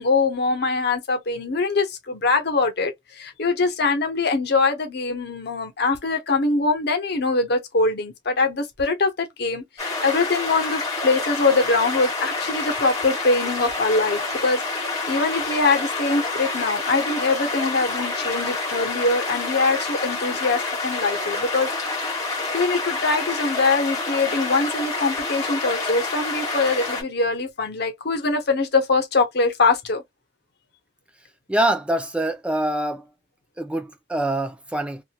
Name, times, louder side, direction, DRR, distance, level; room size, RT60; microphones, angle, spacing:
voice 1, 0.0-21.7 22.5-30.0, left 3 dB, 60° left, 0.8 m, -23 dB
sound 1, 9.8-27.0, left 3 dB, 20° left, 1.4 m, -28 dB
voice 2, 31.5-33.0 33.6-35.0, right 1 dB, 5° right, 0.4 m, -24 dB
2.8 x 2.4 x 2.3 m
head